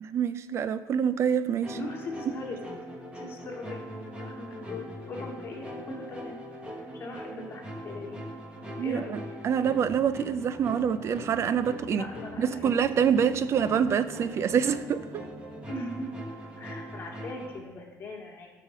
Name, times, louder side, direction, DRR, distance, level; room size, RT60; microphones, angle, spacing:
voice 1, 0.0-1.8 8.8-9.0 9.4-12.0 12.4-15.2, right 7 dB, 45° right, 13 dB, 0.4 m, -26 dB
sound 1, 1.6-17.6, equal, 15° right, 1.3 m, -41 dB
voice 2, 1.7-2.6 3.1-6.4 6.9-8.2 8.8-9.2 11.9-12.7 15.7-16.1 16.6-18.5, left 2 dB, 35° left, -2 dB, 2.1 m, -40 dB
12.0 x 5.7 x 5.0 m, 1.3 s
cardioid pair, 145°, 7 cm